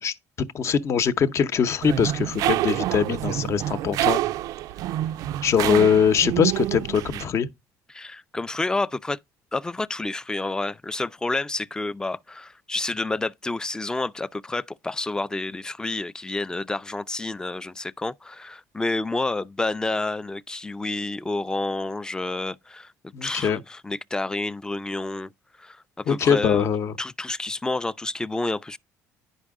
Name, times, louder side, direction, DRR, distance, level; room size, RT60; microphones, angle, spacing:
voice 1, 0.0-4.2 5.4-7.5 23.1-23.6 26.1-27.0, left 7 dB, 50° left, 0.8 m, -22 dB
sound 1, 1.8-7.2, right 14 dB, 70° right, 0.4 m, -27 dB
voice 2, 7.9-9.2 9.5-22.9 23.2-25.3 25.6-26.7 27.0-28.8, left 2 dB, 10° left, 0.4 m, -29 dB
9.9 x 5.3 x 3.6 m
supercardioid pair, 95°, 6 cm